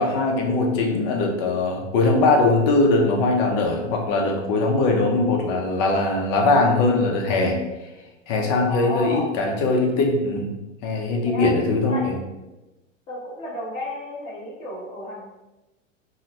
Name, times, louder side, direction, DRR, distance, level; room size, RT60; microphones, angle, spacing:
voice 1, 0.0-7.6 8.3-10.5 10.8-12.2, left 2 dB, 35° left, 1 dB, 0.6 m, -21 dB
voice 2, 8.7-9.3 11.2-11.5 11.9-12.1 13.1-15.2, left 1 dB, 20° left, -9 dB, 1.1 m, -32 dB
3.7 x 2.1 x 2.8 m, 1.0 s
hypercardioid pair, 130°, 38 cm